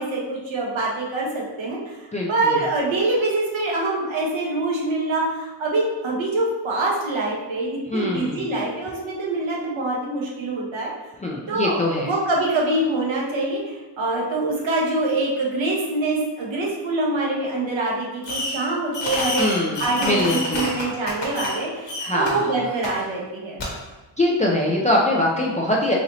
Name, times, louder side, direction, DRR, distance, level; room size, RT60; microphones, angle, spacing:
voice 1, 0.0-10.9 11.5-23.6, right 2 dB, 85° right, -3 dB, 1.0 m, -25 dB
voice 2, 2.1-2.6 7.9-8.6 11.2-12.1 19.4-20.7 22.0-22.6 24.2-25.9, left 1 dB, 20° left, -3 dB, 0.3 m, -23 dB
Fireworks, 18.2-18.7 18.9-21.6 21.9-22.3 22.8-22.9 23.6-23.7, left 1 dB, 65° left, 1.1 m, -28 dB
4.0 x 2.9 x 2.7 m, 1.1 s
wide cardioid pair, 120°, 46 cm